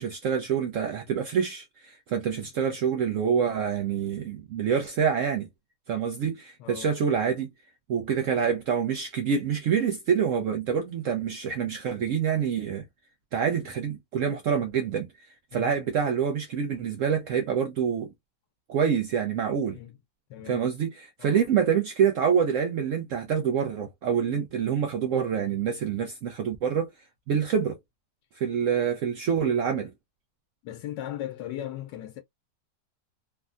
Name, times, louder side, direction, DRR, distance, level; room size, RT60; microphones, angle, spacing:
voice 1, 0.0-5.5 5.9-7.5 7.9-12.8 13.3-18.1 18.7-19.8 20.5-26.9 27.3-27.8 28.3-29.9, right 7 dB, 75° right, 0.7 m, -26 dB
voice 2, 6.6-7.0 15.5-15.7 19.6-20.0 20.3-20.7 21.2-21.4 30.6-32.2, left 12 dB, 90° left, 1.3 m, -38 dB
3.5 x 2.1 x 2.4 m
omnidirectional pair, 1.8 m